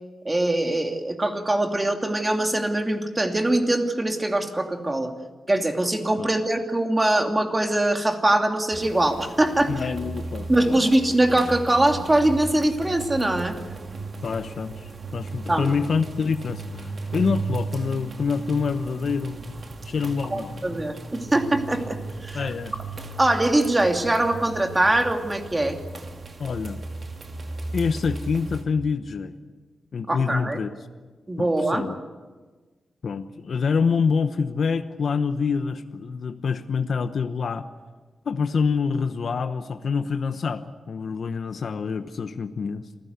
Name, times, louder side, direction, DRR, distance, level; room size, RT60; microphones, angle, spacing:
voice 1, 0.2-5.1 5.5-9.7 10.5-13.5 15.5-15.7 20.3-22.4 23.2-25.8 30.1-30.6 31.3-31.8, right 1 dB, 20° right, 4 dB, 2.6 m, -22 dB
sound 1, 8.7-28.6, right 3 dB, 45° right, 2.6 m, -36 dB
voice 2, 9.7-10.8 14.2-19.4 19.8-20.7 22.3-22.7 26.4-26.8 27.7-29.3 29.9-30.7 31.4-32.0 33.0-37.7 38.2-42.8, left 5 dB, 65° left, 9 dB, 1.0 m, -26 dB
27.0 x 15.5 x 8.2 m, 1.3 s
wide cardioid pair, 105°, 0 cm